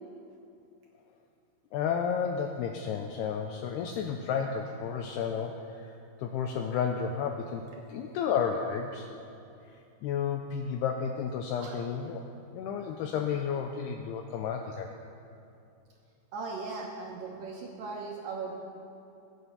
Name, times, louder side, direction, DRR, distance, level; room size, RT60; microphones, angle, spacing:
voice 1, 1.7-9.1 9.6-12.2 12.5-14.9, left 7 dB, 85° left, 4 dB, 2.3 m, -32 dB
voice 2, 16.3-18.6, right 4 dB, 70° right, -1 dB, 2.3 m, -38 dB
21.0 x 9.3 x 5.5 m, 2.6 s
omnidirectional pair, 5.3 m